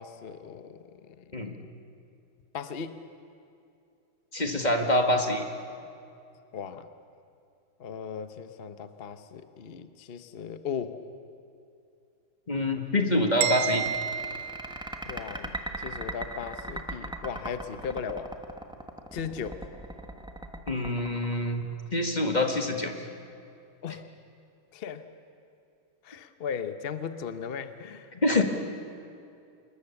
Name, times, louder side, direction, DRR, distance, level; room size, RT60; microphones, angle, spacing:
voice 1, 0.0-1.2 2.5-3.0 6.5-6.9 7.8-11.0 15.0-18.3 19.1-19.6 23.8-24.1 24.7-25.1 26.0-28.4, left 7 dB, 60° left, 10 dB, 0.6 m, -37 dB
voice 2, 4.3-5.4 12.5-13.9 20.7-21.6 21.9-22.9 28.1-28.4, left 1 dB, 25° left, 4 dB, 1.4 m, -25 dB
sound 1, 13.3-22.0, right 1 dB, 5° right, 0.8 m, -38 dB
sound 2, 13.4-15.4, right 10 dB, 60° right, 1.6 m, -32 dB
26.5 x 21.0 x 7.1 m, 2.5 s
omnidirectional pair, 2.4 m